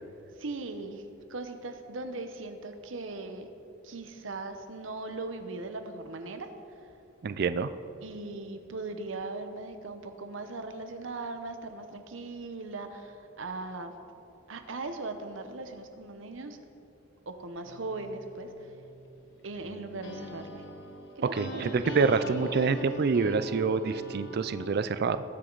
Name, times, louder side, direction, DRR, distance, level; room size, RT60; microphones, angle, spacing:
voice 1, 0.4-1.0 1.3-3.5 3.8-6.5 8.0-13.9 14.5-16.6 17.3-18.5 19.4-20.6 21.2-22.0 22.3-22.8, right 3 dB, 75° right, 8 dB, 0.9 m, -39 dB
voice 2, 7.2-7.7 21.3-25.2, right 4 dB, 55° right, 12 dB, 0.4 m, -27 dB
sound 1, 17.6-24.8, right 1 dB, 65° left, 1.2 m, -42 dB
19.5 x 7.7 x 4.0 m, 2.8 s
head